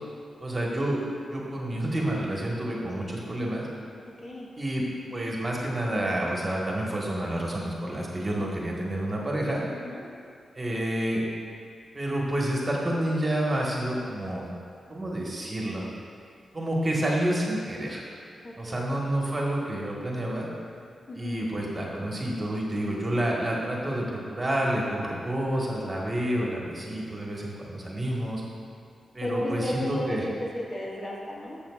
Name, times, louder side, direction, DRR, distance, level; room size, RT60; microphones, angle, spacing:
voice 1, 0.4-1.0 1.3-3.7 4.6-4.8 5.1-9.7 10.5-11.2 11.9-14.5 14.9-15.8 16.5-18.0 18.6-20.5 21.1-28.4 29.1-30.2, right 1 dB, 30° right, -3 dB, 1.4 m, -29 dB
voice 2, 9.7-10.0 18.4-19.0 21.1-21.4 29.2-31.6, left 1 dB, 45° left, -4 dB, 1.6 m, -33 dB
12.5 x 7.3 x 2.4 m, 2.5 s
cardioid pair, 95°, 0 cm